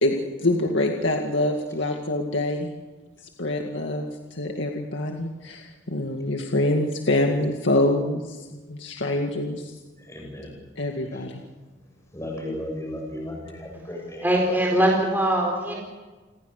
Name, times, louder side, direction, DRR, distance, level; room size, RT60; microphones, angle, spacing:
voice 1, 0.0-2.7 3.2-9.8 10.8-11.4, left 1 dB, 70° left, 2 dB, 2.1 m, -25 dB
voice 2, 10.0-10.6 11.1-11.2 12.1-14.7, left 1 dB, 15° left, 0 dB, 7.6 m, -35 dB
voice 3, 14.2-15.7, right 1 dB, 10° right, -1 dB, 4.5 m, -21 dB
29.5 x 22.0 x 6.7 m, 1.3 s
head